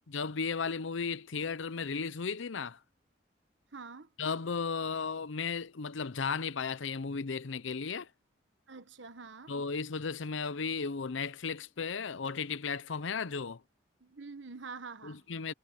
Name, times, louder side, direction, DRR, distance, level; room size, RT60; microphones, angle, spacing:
voice 1, 0.1-2.8 4.2-8.1 9.5-13.6 15.0-15.5, left 5 dB, 80° left, 0.7 m, -35 dB
voice 2, 3.7-4.1 8.7-9.5 14.0-15.2, right 4 dB, 75° right, 1.3 m, -46 dB
head